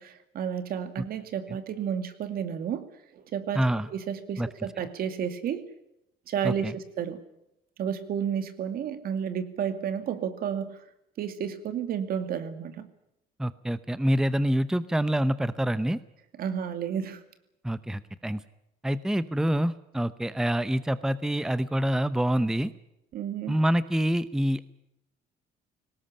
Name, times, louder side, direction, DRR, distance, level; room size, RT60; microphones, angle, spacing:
voice 1, 0.0-2.9 3.1-3.6 3.9-5.6 6.3-7.2 7.8-10.8 11.2-12.9 16.4-17.2 23.1-23.6, right 8 dB, 60° right, 10 dB, 2.5 m, -31 dB
voice 2, 3.5-3.9 4.4-4.5 6.4-6.7 13.4-16.0 17.6-18.4 18.8-22.7 23.5-24.7, equal, 5° right, 14 dB, 0.8 m, -26 dB
19.0 x 18.0 x 10.0 m, 0.84 s
cardioid pair, 110°, 17 cm